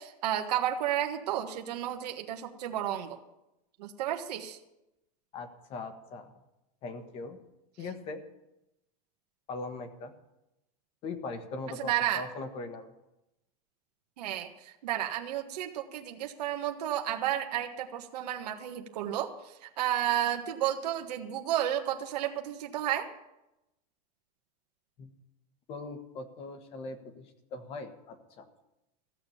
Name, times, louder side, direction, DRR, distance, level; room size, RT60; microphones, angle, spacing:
voice 1, 0.0-3.2 3.8-4.6 11.8-12.2 14.2-23.1, right 11 dB, 85° right, 4 dB, 1.5 m, -32 dB
voice 2, 5.3-6.3 6.8-7.4 7.8-8.2 9.5-10.1 11.0-12.9 25.0-25.1 25.7-28.4, left 3 dB, 30° left, 8 dB, 1.4 m, -40 dB
15.5 x 7.4 x 8.6 m, 0.90 s
supercardioid pair, 170°, 20 cm